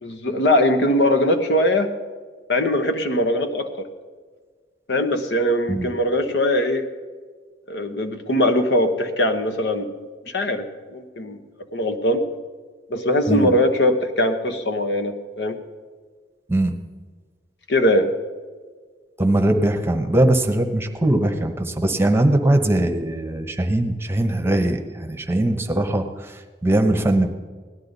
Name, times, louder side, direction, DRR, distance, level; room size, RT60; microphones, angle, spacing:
voice 1, 0.0-1.9 2.5-3.9 4.9-6.9 7.7-9.9 10.3-11.4 11.7-12.2 12.9-15.6 17.7-18.1, left 1 dB, 75° left, 7 dB, 1.1 m, -21 dB
voice 2, 19.2-26.4 26.6-27.3, right 1 dB, 15° right, 5 dB, 0.9 m, -20 dB
17.5 x 12.0 x 4.0 m, 1.5 s
head